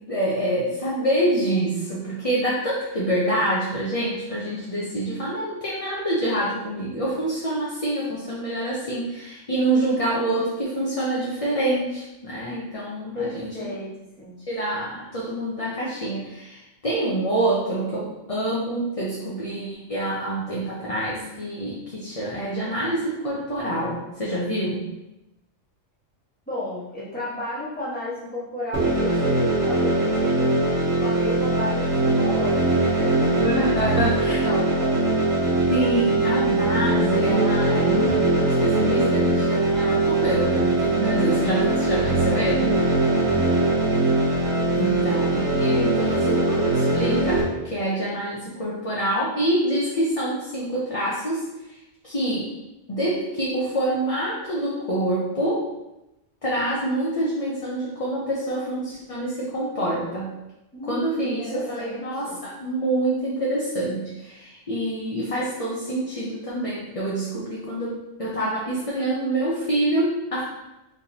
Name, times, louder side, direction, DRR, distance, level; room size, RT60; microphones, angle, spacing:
voice 1, 0.1-13.5 14.5-24.8 33.4-34.4 35.7-38.3 38.6-42.7 44.8-51.5 52.0-52.5 52.9-55.6 56.4-60.3 60.9-70.4, right 1 dB, 35° left, -6 dB, 0.6 m, -26 dB
voice 2, 13.1-14.3 26.5-30.6 31.0-33.3 33.7-35.0 60.7-62.4, left 2 dB, 5° left, -9 dB, 1.3 m, -33 dB
sound 1, 28.7-47.4, right 2 dB, 80° right, 1.5 m, -21 dB
4.4 x 3.4 x 2.8 m, 0.95 s
omnidirectional pair, 1.4 m